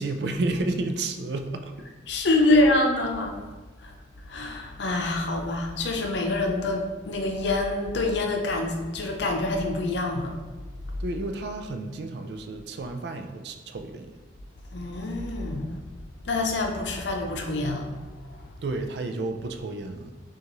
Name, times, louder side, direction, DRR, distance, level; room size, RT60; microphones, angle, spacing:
voice 1, 0.0-1.7 2.5-2.6 11.0-14.1 18.6-20.1, right 2 dB, 65° right, 6 dB, 0.4 m, -31 dB
voice 2, 2.1-3.5 3.8-3.9 4.3-10.3 14.7-15.8 16.2-18.0 18.4-18.5, left 2 dB, 75° left, 2 dB, 0.6 m, -26 dB
6.4 x 2.5 x 3.0 m, 1.2 s
head